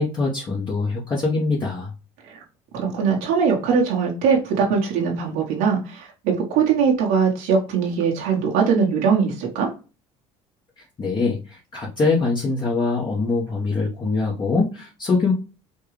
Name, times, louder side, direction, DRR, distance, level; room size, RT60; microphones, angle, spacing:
voice 1, 0.0-1.9 10.8-15.3, left 3 dB, 30° left, 1.1 m, -23 dB
voice 2, 2.7-9.7, right 6 dB, 80° right, 1.2 m, -21 dB
4.4 x 2.3 x 3.2 m
supercardioid pair, 90°, 15 cm